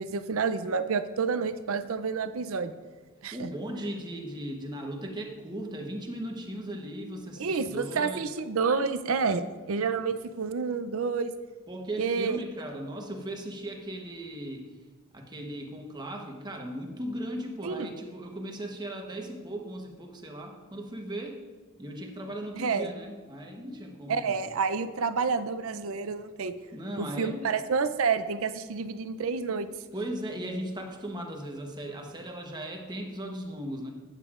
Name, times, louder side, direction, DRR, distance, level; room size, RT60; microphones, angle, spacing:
voice 1, 0.0-2.7 3.2-3.5 7.4-11.3 12.0-12.4 17.6-17.9 22.6-22.9 24.1-26.5 27.0-29.7, right 5 dB, 70° right, 11 dB, 0.5 m, -29 dB
voice 2, 3.3-8.3 11.7-14.7 15.1-21.4 21.8-24.4 26.7-27.5 29.9-33.9, right 1 dB, 20° right, 1 dB, 1.0 m, -37 dB
11.5 x 9.1 x 2.5 m, 1.4 s
head